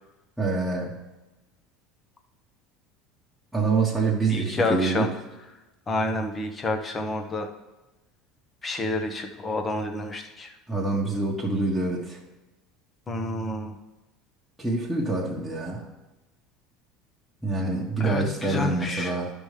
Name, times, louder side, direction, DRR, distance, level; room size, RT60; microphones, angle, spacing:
voice 1, 0.4-1.0 3.5-5.1 10.7-12.2 14.6-15.8 17.4-19.3, right 3 dB, 5° right, -5 dB, 1.4 m, -26 dB
voice 2, 4.3-5.1 5.9-7.5 8.6-10.5 13.1-13.8 18.0-19.1, left 2 dB, 30° left, 4 dB, 1.2 m, -29 dB
12.0 x 5.3 x 3.4 m, 1.1 s
hypercardioid pair, 80°, 0 cm